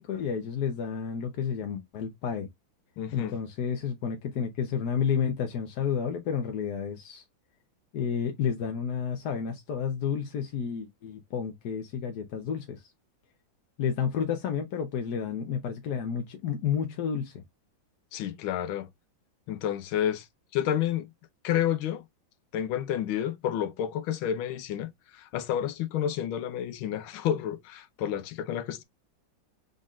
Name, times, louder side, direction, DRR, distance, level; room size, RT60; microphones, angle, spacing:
voice 1, 0.0-2.5 3.1-7.2 7.9-12.8 13.8-17.4, left 7 dB, 60° left, 1.2 m, -31 dB
voice 2, 3.0-3.3 18.1-18.9 19.5-20.3 20.5-21.1 21.4-22.0 22.5-28.8, left 10 dB, 85° left, 1.5 m, -30 dB
5.2 x 3.9 x 2.4 m
omnidirectional pair, 2.2 m